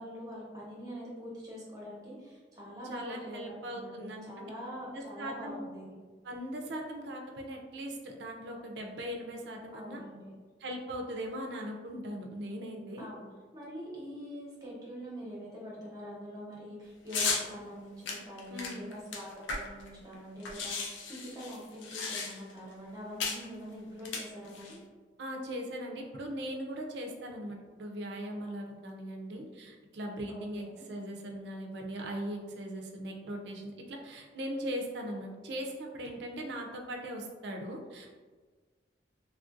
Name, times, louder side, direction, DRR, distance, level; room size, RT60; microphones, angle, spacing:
voice 1, 0.0-5.8 9.7-10.3 13.0-13.2 13.5-24.8 30.3-30.8, equal, 20° right, -5 dB, 0.8 m, -44 dB
voice 2, 2.9-4.5 4.9-5.7 6.2-10.0 10.6-13.1 18.5-18.9 25.2-38.1, equal, 65° right, 1 dB, 0.5 m, -39 dB
sound 1, 17.1-17.5 18.1-19.9 20.1-20.2 20.4-22.6 23.2-23.5 24.0-24.8, left 4 dB, 85° left, 0.5 m, -35 dB
3.3 x 2.4 x 2.5 m, 1.4 s
head